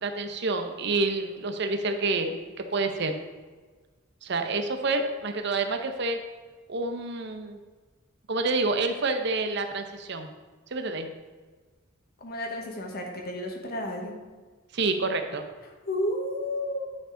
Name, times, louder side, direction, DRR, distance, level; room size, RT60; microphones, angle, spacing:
voice 1, 0.0-3.2 4.2-6.2 6.7-7.6 8.3-10.3 10.7-11.1 14.7-15.4, right 3 dB, 60° right, 6 dB, 0.7 m, -28 dB
voice 2, 12.2-14.2 15.9-17.0, left 1 dB, 50° left, 1 dB, 1.1 m, -32 dB
9.6 x 5.0 x 3.8 m, 1.4 s
head